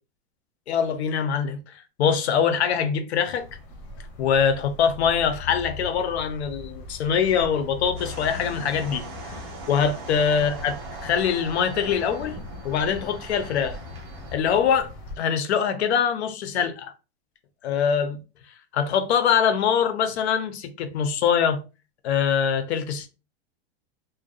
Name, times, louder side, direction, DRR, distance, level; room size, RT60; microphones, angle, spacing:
voice 1, 0.7-1.6 2.0-3.5 4.2-9.3 9.7-10.8 11.0-12.4 12.6-13.8 14.3-14.9 15.2-16.9 17.6-18.2 18.7-21.6 22.0-23.1, left 7 dB, 80° left, 0.6 m, -23 dB
sound 1, 3.4-15.2, left 3 dB, 30° left, 0.7 m, -40 dB
sound 2, 8.0-14.4, right 2 dB, 25° right, 0.4 m, -40 dB
2.6 x 2.2 x 2.3 m
supercardioid pair, 175°, 32 cm